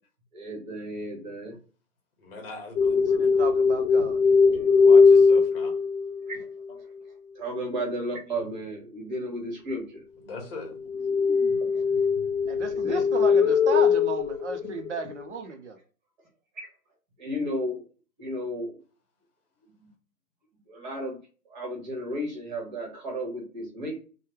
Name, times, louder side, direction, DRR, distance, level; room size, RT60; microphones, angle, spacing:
voice 1, 0.3-1.5 6.3-6.4 7.4-10.0 11.7-11.8 12.7-13.5 13.7-13.9 16.6-16.7 17.2-17.8 18.2-18.8 19.8-19.9 20.7-21.2 21.5-24.0, equal, 30° right, 1.2 m, -33 dB
voice 2, 2.2-3.2 4.8-5.7 10.2-10.8, left 3 dB, 35° left, 1.1 m, -40 dB
sound 1, 2.8-6.5 10.9-15.3, left 5 dB, 70° left, 0.5 m, -21 dB
voice 3, 2.9-4.2 12.4-15.8, right 5 dB, 50° right, 0.6 m, -34 dB
3.1 x 2.3 x 3.1 m
hypercardioid pair, 150°, 46 cm